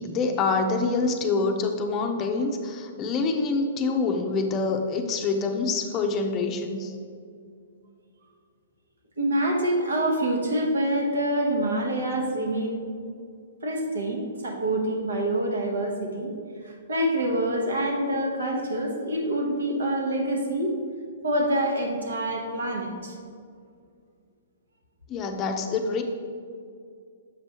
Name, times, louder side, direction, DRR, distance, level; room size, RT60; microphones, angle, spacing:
voice 1, 0.0-6.9 25.1-26.0, left 4 dB, 30° left, 5 dB, 0.5 m, -26 dB
voice 2, 9.2-12.8 13.6-16.3 16.6-20.7 21.2-23.2, right 1 dB, 75° right, 1 dB, 1.1 m, -26 dB
6.8 x 5.3 x 2.9 m, 2.3 s
figure-of-eight pair, 120°, 0 cm